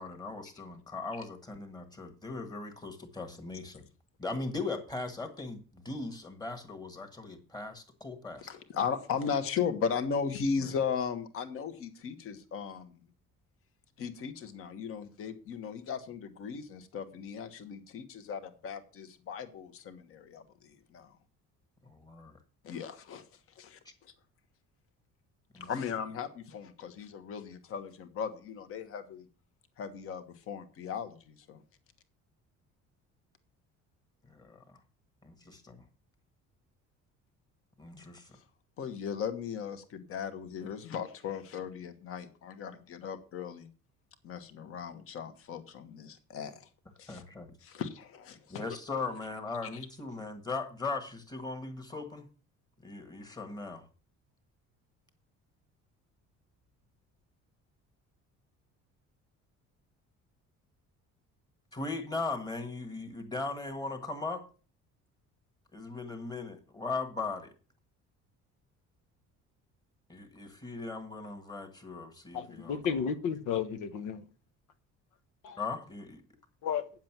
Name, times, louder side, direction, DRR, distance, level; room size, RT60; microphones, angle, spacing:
voice 1, 0.0-3.9 4.2-8.5 10.6-10.7 21.8-22.4 25.5-25.7 34.3-34.8 35.2-35.8 37.8-38.4 47.1-47.5 48.5-52.3 52.8-53.9 61.7-64.4 65.7-67.5 70.1-73.1 75.6-76.2, left 3 dB, 15° left, 1.6 m, -39 dB
voice 2, 8.5-13.0 14.0-21.1 22.6-23.2 23.6-24.1 25.6-29.3 29.8-31.6 38.8-43.7 44.2-46.6 47.0-47.2 47.6-48.6, left 6 dB, 45° left, 1.4 m, -37 dB
voice 3, 72.3-74.2 75.4-75.6 76.6-76.8, left 7 dB, 85° left, 1.2 m, -32 dB
9.3 x 7.4 x 6.0 m
cardioid pair, 175°, 30 cm